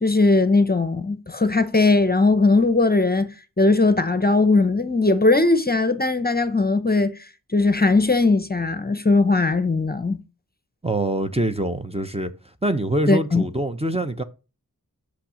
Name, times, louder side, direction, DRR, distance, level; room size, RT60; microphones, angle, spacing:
voice 1, 0.0-3.3 3.6-7.2 7.5-10.2 13.1-13.4, left 3 dB, 25° left, 0.7 m, -19 dB
voice 2, 10.8-12.3 12.6-14.2, right 1 dB, 15° right, 0.7 m, -24 dB
6.3 x 5.8 x 5.0 m
wide cardioid pair, 55°, 34 cm